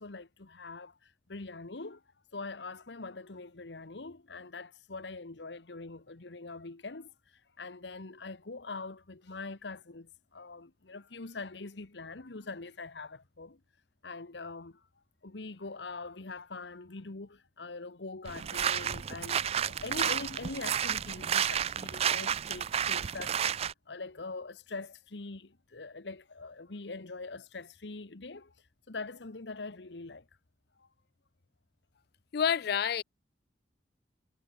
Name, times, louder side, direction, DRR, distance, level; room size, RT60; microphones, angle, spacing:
voice 1, 0.0-2.0 2.3-7.1 7.6-13.6 14.0-14.8 15.2-28.5 28.9-30.2 30.8-30.9, left 3 dB, 80° left, 1.2 m, -43 dB
sound 1, 18.2-23.7, right 9 dB, 35° right, 0.4 m, -31 dB
voice 2, 32.3-33.0, left 7 dB, 60° left, 0.4 m, -28 dB
head